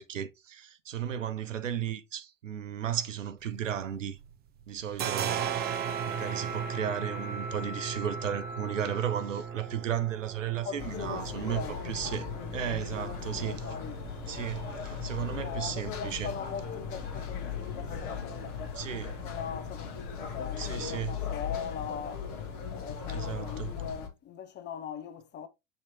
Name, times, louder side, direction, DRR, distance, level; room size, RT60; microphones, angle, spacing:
voice 1, 0.0-4.2 4.7-13.6 14.3-16.3 18.8-19.2 20.6-21.2 23.1-23.7, right 9 dB, 85° right, 0.6 m, -34 dB
sound 1, 3.4-4.3 4.6-22.1, right 8 dB, 25° right, 0.5 m, -40 dB
sound 2, 5.6-9.7, left 1 dB, 70° right, 2.5 m, -42 dB
voice 2, 10.6-11.7 12.6-14.1 15.3-22.3 22.7-25.5, left 8 dB, 30° left, 0.6 m, -41 dB
sound 3, 10.8-24.1, left 6 dB, 50° left, 1.1 m, -38 dB
6.4 x 2.9 x 2.7 m
figure-of-eight pair, 75°, 37 cm